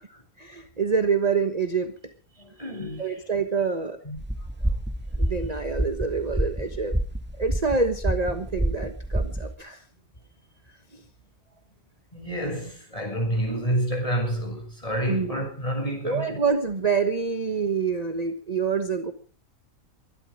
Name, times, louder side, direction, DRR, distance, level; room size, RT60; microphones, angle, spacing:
voice 1, 0.4-1.9 3.0-4.0 5.2-6.9 7.4-9.8 15.1-15.4 16.0-19.1, right 5 dB, 30° right, 1.3 m, -26 dB
voice 2, 2.4-3.1 4.0-4.2 12.1-16.4, right 1 dB, 25° left, 7.1 m, -29 dB
sound 1, 4.2-9.5, right 1 dB, 10° right, 1.7 m, -28 dB
22.5 x 12.5 x 5.0 m
omnidirectional pair, 1.5 m